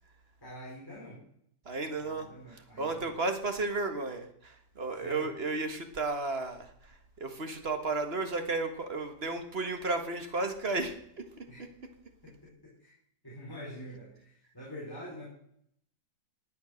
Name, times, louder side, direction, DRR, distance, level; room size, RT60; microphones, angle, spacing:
voice 1, 0.4-1.2 1.9-3.2 5.0-5.3 11.5-11.6 12.2-13.0 13.2-15.3, equal, 10° left, -6 dB, 4.3 m, -46 dB
voice 2, 1.7-11.5, right 3 dB, 35° right, 6 dB, 1.9 m, -34 dB
19.5 x 8.3 x 6.5 m, 0.70 s
omnidirectional pair, 1.9 m